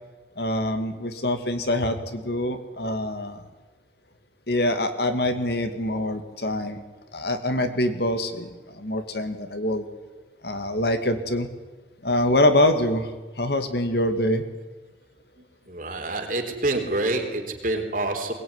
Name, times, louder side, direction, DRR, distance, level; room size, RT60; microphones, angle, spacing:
voice 1, 0.4-3.4 4.5-6.8 7.1-8.5 8.7-9.9 10.4-11.5 12.0-13.1 13.4-14.4, left 1 dB, 55° left, 8 dB, 2.4 m, -24 dB
voice 2, 15.7-18.3, right 2 dB, 45° right, 4 dB, 3.7 m, -27 dB
22.0 x 20.0 x 9.7 m, 1.2 s
head